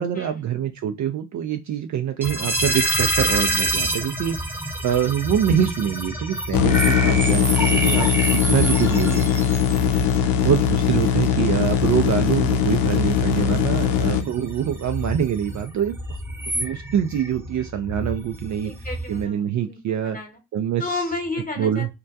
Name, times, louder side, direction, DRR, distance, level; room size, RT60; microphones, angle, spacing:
voice 1, 0.0-4.4 4.8-8.1 8.5-9.3 10.4-16.0 16.5-18.7 19.1-20.2 20.5-21.0 21.6-21.9, right 9 dB, 40° right, 0.4 m, -24 dB
sound 1, 2.2-19.2, right 1 dB, 5° right, 0.7 m, -28 dB
sound 2, 6.5-14.2, left 8 dB, 60° left, 0.6 m, -20 dB
voice 2, 9.7-10.1 18.6-20.4 20.8-21.9, left 3 dB, 15° left, 1.1 m, -32 dB
2.2 x 2.1 x 2.6 m
hypercardioid pair, 55°, 47 cm